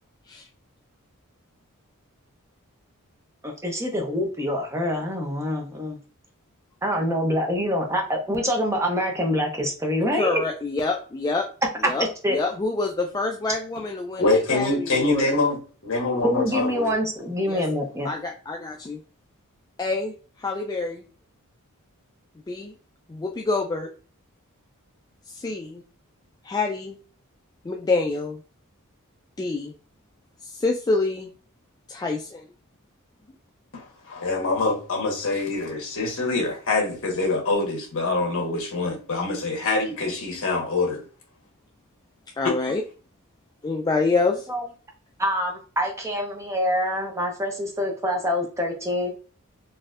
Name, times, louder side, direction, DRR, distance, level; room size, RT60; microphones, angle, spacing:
voice 1, 3.4-6.0 6.8-10.4 11.8-11.9 12.2-12.4 16.2-18.1 44.5-44.7 45.2-49.1, equal, 15° right, 0.7 m, -25 dB
voice 2, 10.2-11.5 11.8-12.1 12.3-15.4 17.5-17.6 18.0-19.0 19.8-20.1 20.4-21.0 22.5-22.7 23.1-23.9 25.3-25.8 26.4-27.0 27.6-28.4 29.4-29.7 30.4-31.3 31.9-32.4 42.4-42.8 43.6-44.5, left 3 dB, 15° left, 0.3 m, -26 dB
voice 3, 14.2-15.6 15.8-16.9 33.7-41.0 42.4-42.6, left 3 dB, 65° left, 1.3 m, -25 dB
4.1 x 2.6 x 2.4 m
head